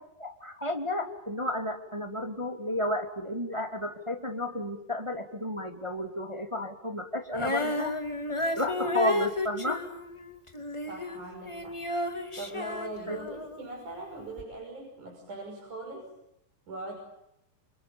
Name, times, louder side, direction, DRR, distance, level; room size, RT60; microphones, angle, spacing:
voice 1, 0.2-8.0 8.5-9.9 13.1-13.2, left 1 dB, 10° right, 6 dB, 1.8 m, -32 dB
Female singing, 7.3-13.7 14.4-14.5, left 1 dB, 10° left, 1.5 m, -32 dB
voice 2, 10.9-11.8 12.4-16.1 16.7-17.0, right 2 dB, 45° right, 0 dB, 7.2 m, -40 dB
29.0 x 28.5 x 7.0 m, 0.84 s
omnidirectional pair, 4.8 m